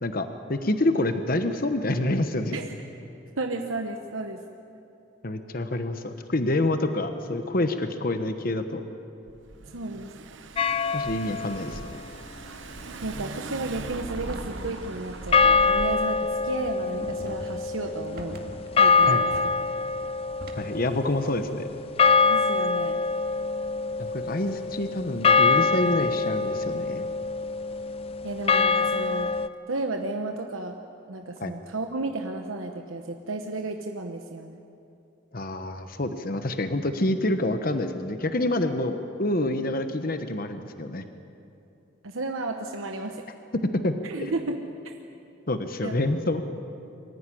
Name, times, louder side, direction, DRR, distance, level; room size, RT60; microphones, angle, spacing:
voice 1, 0.0-2.6 5.2-8.8 10.9-11.9 19.0-19.2 20.5-21.7 24.0-27.1 31.4-31.5 35.3-41.0 43.6-44.3 45.5-46.4, left 1 dB, 45° left, 8 dB, 1.0 m, -27 dB
voice 2, 3.4-4.4 9.7-10.1 13.0-18.4 18.7-19.3 19.7-19.8 22.3-23.0 28.2-29.3 29.7-30.8 31.1-34.6 42.0-43.3 44.0-44.6 44.8-44.9 45.8-45.9, right 2 dB, 80° right, 4 dB, 1.1 m, -33 dB
Car / Engine, 9.3-16.2, right 3 dB, 65° right, 0.8 m, -39 dB
sound 1, 10.6-11.6 15.3-29.5, left 4 dB, 30° left, 0.4 m, -24 dB
sound 2, 14.1-20.9, right 1 dB, 50° right, 2.1 m, -44 dB
24.0 x 14.5 x 9.9 m, 2.7 s
head